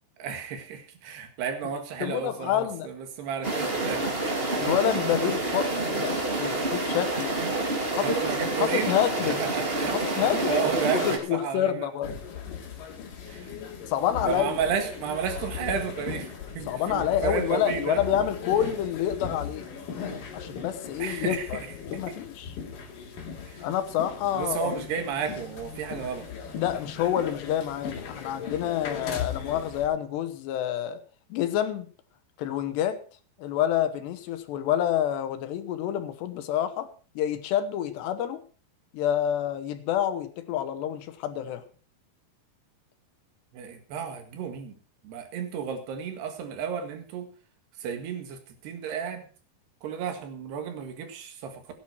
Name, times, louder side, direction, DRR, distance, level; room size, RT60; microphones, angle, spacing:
voice 1, 0.2-4.1 8.0-8.9 9.4-11.9 13.3-13.5 14.2-18.0 21.0-21.5 22.1-22.2 23.5-23.6 24.4-26.3 43.5-44.7 45.0-47.3 47.8-49.2 49.8-51.6, right 7 dB, 75° right, 6 dB, 3.9 m, -32 dB
voice 2, 2.0-2.9 4.6-7.3 7.9-8.2 8.6-9.4 9.9-10.6 10.9-12.2 13.9-14.6 16.7-19.7 20.3-22.6 23.6-24.7 26.5-31.0 31.3-31.9 32.4-33.0 33.4-36.9 37.2-38.4 38.9-41.6, left 10 dB, 80° left, 10 dB, 3.3 m, -28 dB
sound 1, 3.4-11.2, right 2 dB, 20° right, 1.8 m, -28 dB
sound 2, 12.0-29.9, left 6 dB, 55° left, 3.9 m, -38 dB
16.5 x 10.5 x 4.6 m, 0.38 s
omnidirectional pair, 4.8 m